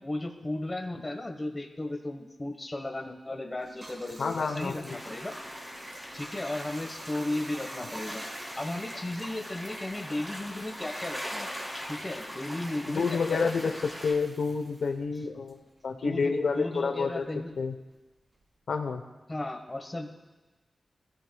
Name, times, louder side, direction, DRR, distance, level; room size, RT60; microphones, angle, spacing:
voice 1, 0.0-5.4 6.1-8.3 8.6-11.5 11.9-13.7 15.9-17.5 19.3-20.1, left 1 dB, 20° left, 3 dB, 1.2 m, -35 dB
Bathtub (filling or washing), 3.6-16.4 16.7-18.6, right 1 dB, 35° right, 2.2 m, -50 dB
voice 2, 4.2-5.0 12.8-17.3 17.6-17.7 18.7-19.0, left 5 dB, 90° left, 6 dB, 0.9 m, -29 dB
sound 1, 4.9-14.1, equal, 10° right, 2.6 m, -41 dB
22.5 x 14.0 x 2.3 m, 1.2 s
wide cardioid pair, 155°, 0 cm